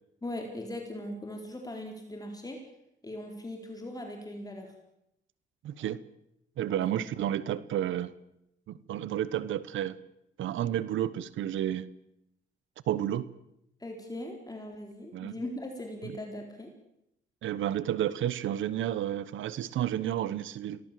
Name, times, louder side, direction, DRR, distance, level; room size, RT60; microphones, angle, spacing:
voice 1, 0.2-2.6 3.0-4.7 13.8-16.7, left 1 dB, 20° left, 3 dB, 4.2 m, -39 dB
voice 2, 5.6-6.0 6.6-8.1 8.7-9.9 10.4-11.9 12.9-13.3 15.1-15.3 17.4-20.8, right 11 dB, 75° right, 17 dB, 1.1 m, -31 dB
24.5 x 19.0 x 7.7 m, 0.81 s
cardioid pair, 90°, 20 cm